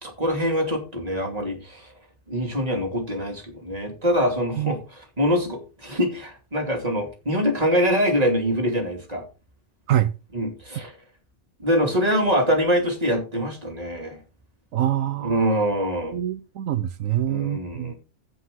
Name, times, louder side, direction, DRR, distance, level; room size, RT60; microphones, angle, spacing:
voice 1, 0.0-1.9 2.3-4.8 5.2-9.2 10.3-10.9 11.6-14.2 15.2-16.2 17.3-17.9, equal, 30° right, 2.7 m, -24 dB
voice 2, 14.7-15.6 16.1-17.9, right 12 dB, 85° right, 1.1 m, -25 dB
15.5 x 5.4 x 3.8 m
omnidirectional pair, 1.3 m